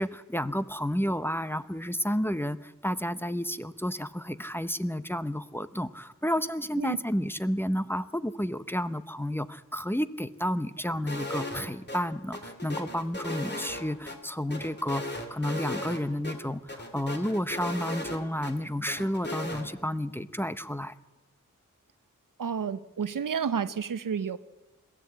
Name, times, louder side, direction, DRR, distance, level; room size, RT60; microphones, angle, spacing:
voice 1, 0.0-20.9, equal, 5° left, 13 dB, 0.8 m, -31 dB
sound 1, 11.1-11.6 11.9-12.0 12.3-14.2 14.5-16.0 16.2-16.4 16.7-18.5 18.9-19.6, left 1 dB, 35° left, 3.0 m, -36 dB
voice 2, 22.4-24.4, right 7 dB, 80° right, 15 dB, 0.8 m, -30 dB
22.0 x 15.0 x 8.5 m, 1.2 s
wide cardioid pair, 70°, 32 cm